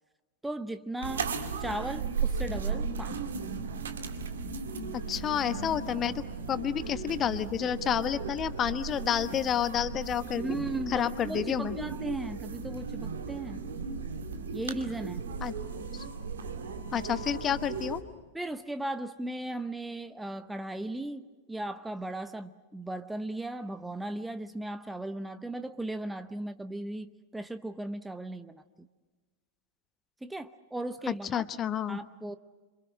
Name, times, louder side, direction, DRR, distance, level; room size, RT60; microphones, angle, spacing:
voice 1, 0.4-1.3 1.6-3.3 10.4-13.6 14.5-15.3 18.3-28.6 30.2-31.4 31.9-32.3, right 1 dB, 5° right, 11 dB, 0.8 m, -37 dB
sound 1, 1.0-18.0, right 5 dB, 65° right, 2.3 m, -36 dB
voice 2, 4.9-10.4 10.9-11.8 15.4-15.5 15.9-16.0 16.9-18.0 31.1-32.0, left 9 dB, 25° left, 13 dB, 1.1 m, -30 dB
28.0 x 26.5 x 6.4 m, 1.3 s
figure-of-eight pair, 90°, 0 cm